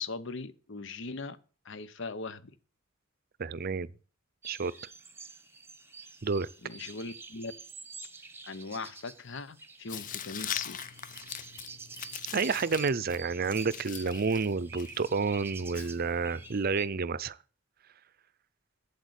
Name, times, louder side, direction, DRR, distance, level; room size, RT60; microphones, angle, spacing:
voice 1, 0.0-1.4 1.6-2.5 6.6-7.5 8.5-10.8, left 4 dB, 65° left, 0.9 m, -39 dB
voice 2, 3.4-3.9 4.4-4.7 6.2-6.5 12.3-17.4, right 4 dB, 45° right, 0.6 m, -30 dB
sound 1, 4.4-16.9, right 4 dB, 10° right, 1.1 m, -49 dB
Tearing, 9.9-16.5, left 9 dB, 40° left, 0.6 m, -42 dB
8.2 x 8.1 x 8.1 m
head